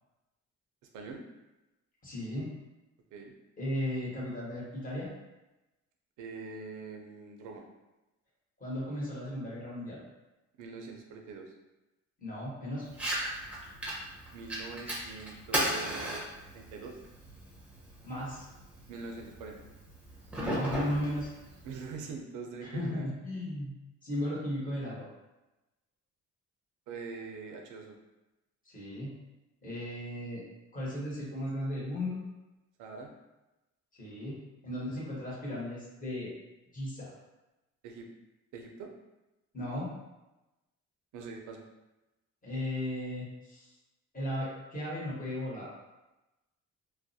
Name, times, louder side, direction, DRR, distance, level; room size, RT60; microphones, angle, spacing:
voice 1, 2.0-2.5 3.6-5.1 8.6-10.0 12.2-12.9 18.0-18.4 20.4-21.3 22.6-23.7 24.0-25.1 28.6-29.1 29.6-30.4 30.7-32.2 34.0-34.4 34.6-36.3 36.7-37.1 39.5-39.9 42.4-43.7 44.1-45.7, left 1 dB, 25° left, -6 dB, 1.1 m, -35 dB
voice 2, 6.2-7.6 10.6-11.5 14.3-16.2 16.5-17.0 18.9-19.6 21.6-23.1 26.9-28.0 32.8-33.1 37.8-38.1 38.5-38.9 41.1-41.6, right 4 dB, 80° right, 2 dB, 0.5 m, -43 dB
Fire, 12.9-21.9, right 1 dB, 5° right, 0.7 m, -37 dB
2.4 x 2.0 x 2.6 m, 1.0 s
cardioid pair, 90°, 30 cm